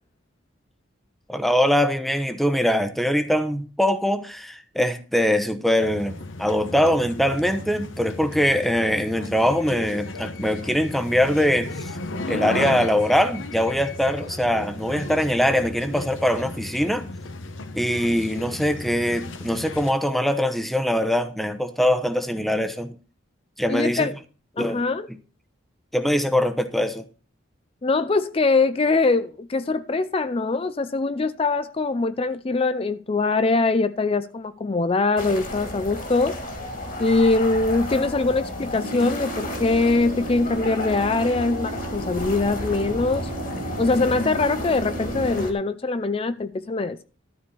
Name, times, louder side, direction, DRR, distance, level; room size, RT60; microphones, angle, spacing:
voice 1, 1.3-11.7 12.3-17.0 17.7-22.9 23.6-24.1 24.6-24.8 25.1-25.2 25.9-27.0, equal, ahead, 0.9 m, -22 dB
sound 1, 5.8-19.9, left 2 dB, 80° left, 1.1 m, -34 dB
voice 2, 23.7-24.1 24.6-25.1 27.8-36.4 37.0-43.3 43.8-47.0, left 3 dB, 30° left, 0.4 m, -22 dB
sound 2, 35.2-45.5, left 1 dB, 45° left, 2.5 m, -32 dB
sound 3, 38.8-45.3, right 3 dB, 60° right, 0.6 m, -36 dB
13.0 x 4.3 x 8.4 m
head